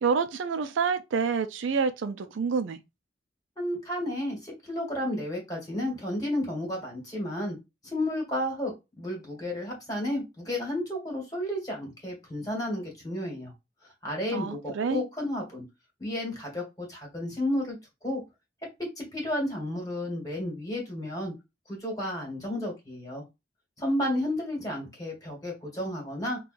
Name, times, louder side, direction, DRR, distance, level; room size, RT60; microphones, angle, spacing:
voice 1, 0.0-2.8 14.3-15.0, right 5 dB, 75° right, 0.4 m, -28 dB
voice 2, 3.6-7.6 7.8-13.5 14.0-15.6 16.0-17.7 18.0-18.2 19.0-21.3 21.7-23.2 23.8-26.4, left 1 dB, 20° left, 1.5 m, -32 dB
5.4 x 2.3 x 2.5 m
head